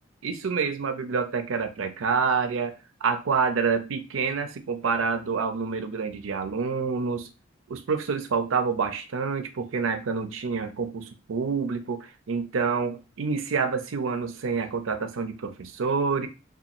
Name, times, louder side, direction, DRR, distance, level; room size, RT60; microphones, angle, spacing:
voice 1, 0.2-2.7 3.0-7.3 7.7-16.3, right 5 dB, 90° right, 0.5 m, -27 dB
2.7 x 2.3 x 2.5 m
head